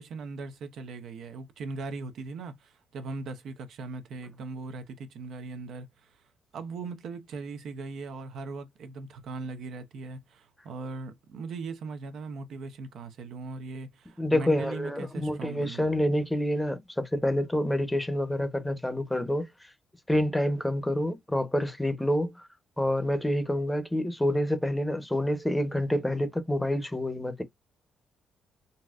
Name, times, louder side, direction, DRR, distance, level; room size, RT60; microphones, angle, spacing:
voice 1, 0.0-6.2 6.5-15.8, right 4 dB, 70° right, 0.7 m, -39 dB
voice 2, 14.2-19.7 20.1-22.5 22.8-27.4, left 1 dB, 10° left, 0.8 m, -27 dB
3.9 x 2.2 x 2.4 m
cardioid pair, 90°, 0 cm